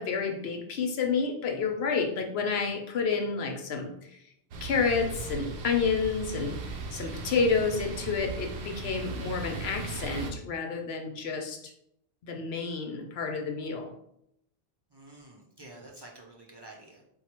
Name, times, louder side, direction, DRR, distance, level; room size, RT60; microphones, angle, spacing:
voice 1, 0.0-4.2 4.6-6.6 6.9-11.7 12.2-13.9, left 5 dB, 70° left, 3 dB, 0.9 m, -30 dB
sound 1, 4.5-10.3, right 3 dB, 75° right, 0.8 m, -38 dB
voice 2, 14.9-17.0, right 2 dB, 35° right, -2 dB, 0.4 m, -49 dB
4.5 x 2.1 x 4.2 m, 0.76 s
omnidirectional pair, 1.1 m